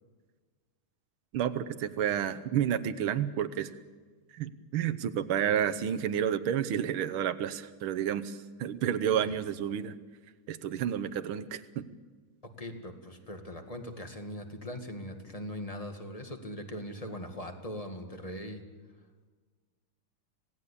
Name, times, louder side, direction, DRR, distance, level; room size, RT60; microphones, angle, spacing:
voice 1, 1.3-3.7 4.3-10.0 10.5-11.9, right 9 dB, 80° right, 11 dB, 1.8 m, -30 dB
voice 2, 12.6-18.6, left 1 dB, 15° left, 5 dB, 2.0 m, -40 dB
26.5 x 18.0 x 8.5 m, 1.5 s
omnidirectional pair, 2.3 m